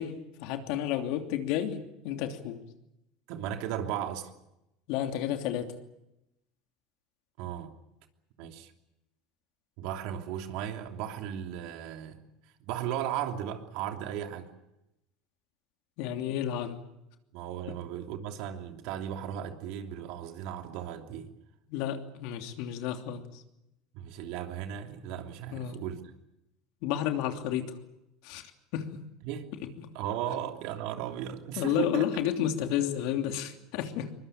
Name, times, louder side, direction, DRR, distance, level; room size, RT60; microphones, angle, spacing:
voice 1, 0.0-2.6 4.9-5.7 16.0-16.8 17.7-17.8 21.7-23.2 25.5-25.8 26.8-27.8 28.2-28.4 28.7-29.1 29.8-29.9 31.6-34.1, left 10 dB, 70° left, 2.9 m, -31 dB
voice 2, 3.3-4.3 7.4-7.7 8.4-8.7 9.8-12.2 12.6-14.5 17.3-21.3 23.9-26.0 29.2-29.5 29.9-32.1, right 10 dB, 70° right, 3.0 m, -36 dB
23.0 x 21.5 x 8.8 m
supercardioid pair, 105°, 0 cm